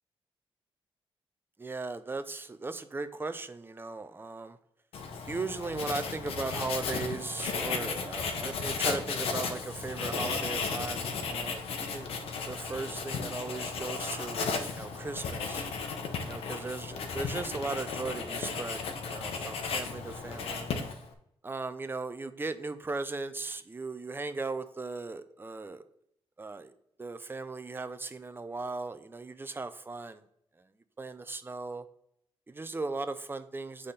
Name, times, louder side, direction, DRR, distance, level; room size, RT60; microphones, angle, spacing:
voice 1, 1.6-4.6 5.3-12.1 12.5-15.7 16.2-20.7 21.4-25.8 26.4-26.7 27.0-30.2 31.0-31.8 32.5-33.9, right 3 dB, 20° right, 10 dB, 0.6 m, -37 dB
Writing, 4.9-21.1, left 5 dB, 85° left, 0.9 m, -35 dB
8.6 x 3.6 x 4.1 m, 0.73 s
cardioid pair, 85°, 10 cm